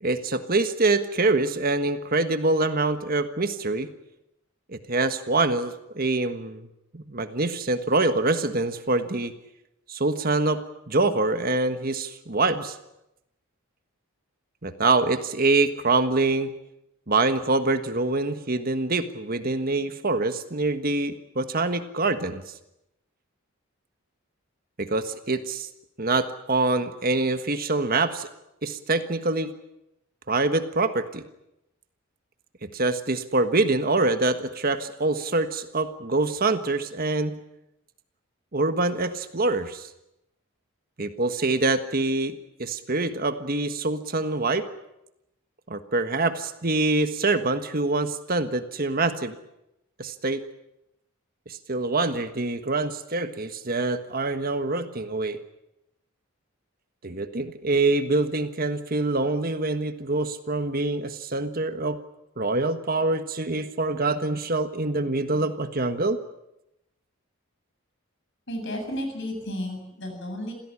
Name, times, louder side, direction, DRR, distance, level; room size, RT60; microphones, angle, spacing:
voice 1, 0.0-3.9 4.7-6.7 7.1-9.3 9.9-12.7 14.6-16.5 17.1-22.4 24.8-25.7 26.0-28.3 28.6-29.5 30.3-31.2 32.6-37.4 38.5-39.9 41.0-42.3 42.6-44.6 45.7-49.3 50.0-50.4 51.5-55.4 57.0-62.0 62.4-66.2, right 2 dB, 40° right, 9 dB, 1.5 m, -25 dB
voice 2, 68.5-70.5, equal, 55° left, 5 dB, 7.9 m, -32 dB
27.5 x 16.5 x 9.9 m, 0.88 s
head